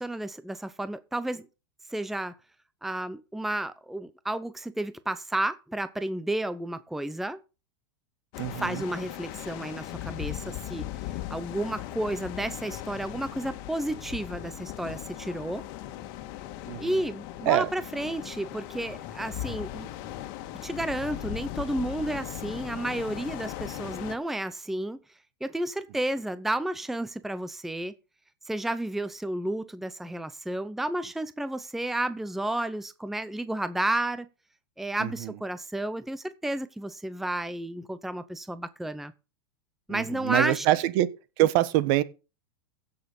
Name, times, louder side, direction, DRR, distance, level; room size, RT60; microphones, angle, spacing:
voice 1, 0.0-1.5 1.9-2.3 2.8-7.4 8.6-10.9 11.3-15.6 16.8-19.9 20.6-25.0 25.4-27.9 28.4-34.3 34.8-39.1 39.9-40.7, right 1 dB, ahead, 0.7 m, -32 dB
sound 1, 8.3-24.2, left 13 dB, 55° left, 1.8 m, -38 dB
voice 2, 8.4-8.8 16.7-17.0 17.4-17.7 35.0-35.3 39.9-41.1 41.4-42.0, right 14 dB, 55° right, 1.2 m, -25 dB
15.5 x 6.8 x 5.4 m
supercardioid pair, 130°, 14 cm